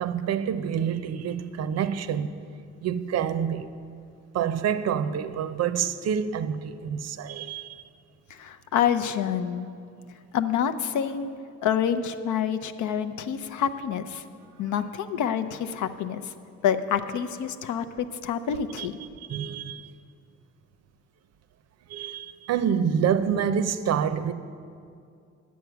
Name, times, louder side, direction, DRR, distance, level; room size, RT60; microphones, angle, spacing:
voice 1, 0.0-2.3 2.8-3.7 4.3-7.8 18.8-18.9 19.2-19.9 21.9-24.3, right 8 dB, 55° right, 0.5 m, -27 dB
voice 2, 8.4-9.7 10.3-11.3 11.6-14.2 14.6-16.3 16.6-19.0, left 8 dB, 75° left, 0.6 m, -27 dB
9.3 x 7.3 x 5.9 m
cardioid pair, 90°, 30 cm